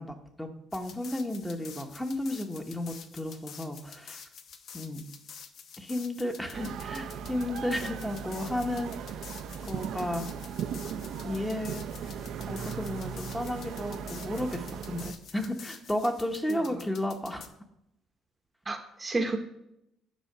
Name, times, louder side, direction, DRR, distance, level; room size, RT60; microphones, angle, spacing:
voice 1, 0.0-4.2 4.7-5.1 5.8-8.9 9.7-10.3 11.2-11.8 12.5-17.4, left 1 dB, 5° left, 5 dB, 1.1 m, -33 dB
sound 1, 0.7-17.5, left 7 dB, 60° left, 0.8 m, -49 dB
sound 2, 6.5-15.1, right 7 dB, 70° right, 0.6 m, -38 dB
voice 2, 16.5-16.9 18.6-19.4, right 3 dB, 20° right, 6 dB, 0.9 m, -32 dB
9.6 x 4.2 x 6.6 m, 0.80 s
cardioid pair, 105°, 0 cm